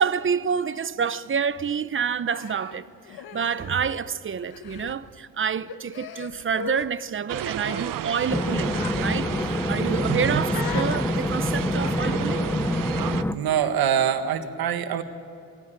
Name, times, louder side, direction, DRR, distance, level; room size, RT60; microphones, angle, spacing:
voice 1, 0.0-12.4, right 6 dB, 35° right, 0.9 m, -28 dB
Human voice, 2.3-4.1 4.4-5.0 5.7-6.9 7.6-7.9 8.7-8.9 9.2-9.5 10.5-11.0 11.8-12.4 13.4-13.7, left 7 dB, 80° left, 1.8 m, -38 dB
sound 1, 7.3-13.2, right 11 dB, 65° right, 0.8 m, -33 dB
sound 2, 8.3-13.4, left 1 dB, 5° left, 1.0 m, -26 dB
voice 2, 10.1-10.4 13.3-15.0, right 9 dB, 85° right, 1.8 m, -24 dB
28.0 x 21.5 x 9.1 m
cardioid pair, 100°, 36 cm